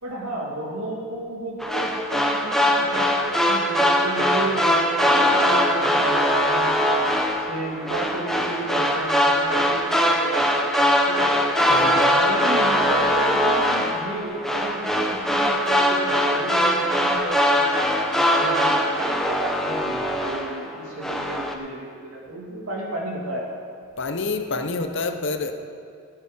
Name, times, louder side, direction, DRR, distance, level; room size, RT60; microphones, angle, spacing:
voice 1, 0.0-6.8 7.3-10.5 10.8-11.4 12.1-17.9 18.3-23.6, right 1 dB, 80° right, -3 dB, 2.7 m, -33 dB
sound 1, 1.6-20.7 21.0-21.5, equal, ahead, 0.7 m, -21 dB
voice 2, 11.7-12.2 24.0-25.5, left 3 dB, 55° left, 7 dB, 0.8 m, -28 dB
17.5 x 6.7 x 5.5 m, 2.4 s
head